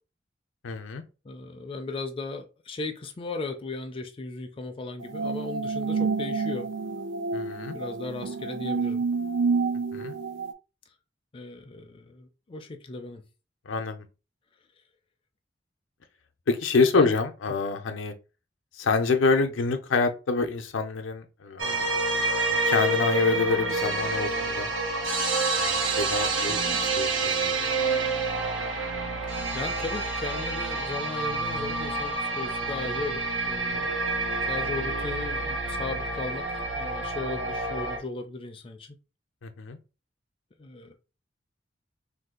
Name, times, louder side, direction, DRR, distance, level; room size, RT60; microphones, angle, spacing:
voice 1, 0.6-1.0 7.3-7.8 9.9-10.1 13.7-14.0 16.5-18.1 18.8-21.8 22.6-24.7 25.5-27.5 39.4-39.8, left 4 dB, 90° left, 0.5 m, -26 dB
voice 2, 1.2-6.7 7.7-9.0 11.3-13.2 17.0-17.1 29.5-33.9 34.5-39.0 40.6-40.9, left 3 dB, 30° left, 0.4 m, -36 dB
sound 1, 5.0-10.5, right 4 dB, 70° right, 0.3 m, -29 dB
sound 2, 21.6-38.0, right 3 dB, 85° right, 0.8 m, -28 dB
2.6 x 2.2 x 3.6 m
head